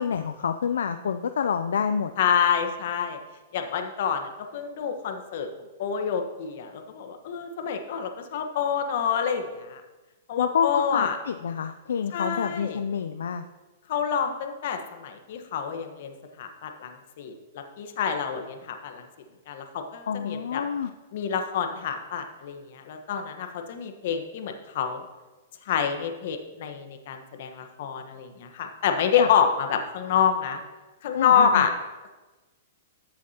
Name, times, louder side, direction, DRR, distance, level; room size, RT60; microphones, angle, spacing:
voice 1, 0.0-2.1 10.4-13.4 20.1-20.9 29.2-29.3 31.1-31.7, left 7 dB, 80° left, 8 dB, 0.4 m, -28 dB
voice 2, 2.2-3.2 3.5-5.5 5.8-9.8 10.3-11.2 12.1-12.8 13.9-16.1 16.4-19.0 19.5-20.6 21.1-25.0 25.7-30.6 31.0-31.7, left 7 dB, 60° left, 6 dB, 1.2 m, -27 dB
13.5 x 7.2 x 2.9 m, 1.2 s
hypercardioid pair, 125°, 0 cm